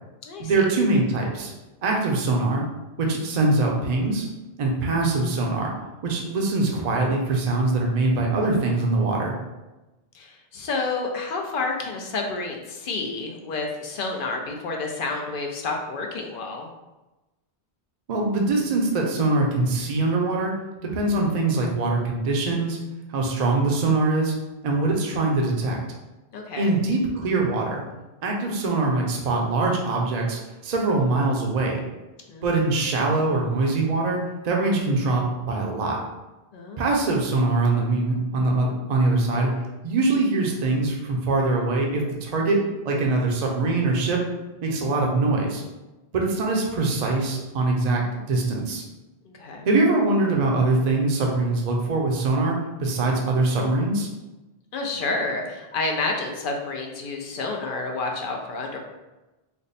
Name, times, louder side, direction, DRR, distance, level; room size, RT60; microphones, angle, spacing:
voice 1, 0.4-1.5 1.8-2.6 3.0-4.3 4.6-5.7 6.0-9.3 18.1-20.5 20.9-22.8 23.1-24.3 24.6-25.8 26.6-27.8 28.2-31.8 32.4-36.0 36.8-39.5 39.8-44.2 44.6-45.6 46.1-48.0 48.3-48.8 49.7-54.1, right 2 dB, 50° right, 0 dB, 0.6 m, -23 dB
voice 2, 10.1-16.7 26.3-26.7 32.3-32.5 36.5-36.9 49.2-49.7 54.7-58.8, left 3 dB, 65° left, 1 dB, 0.7 m, -29 dB
3.4 x 2.1 x 4.0 m, 1.1 s
omnidirectional pair, 1.0 m